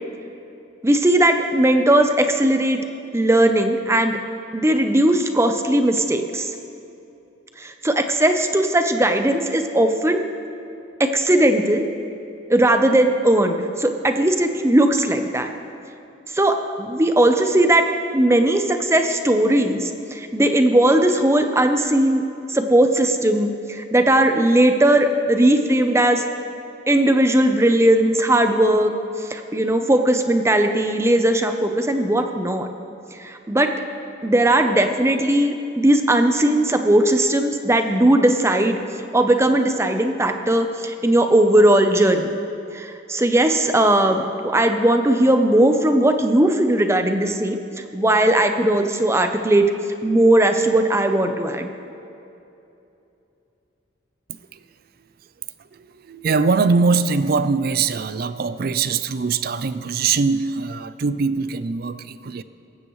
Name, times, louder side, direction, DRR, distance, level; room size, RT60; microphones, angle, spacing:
voice 1, 0.8-2.8 3.1-4.2 4.5-6.5 7.6-10.2 11.0-11.9 12.5-15.5 16.3-17.9 18.1-22.2 22.5-26.2 26.9-32.7 33.1-33.7 34.2-38.8 39.1-42.4 42.7-47.6 47.9-49.7 50.0-51.7, right 1 dB, 15° right, 0.7 m, -18 dB
voice 2, 54.3-54.6 55.6-62.4, right 4 dB, 50° right, 0.4 m, -22 dB
17.5 x 14.5 x 3.1 m
head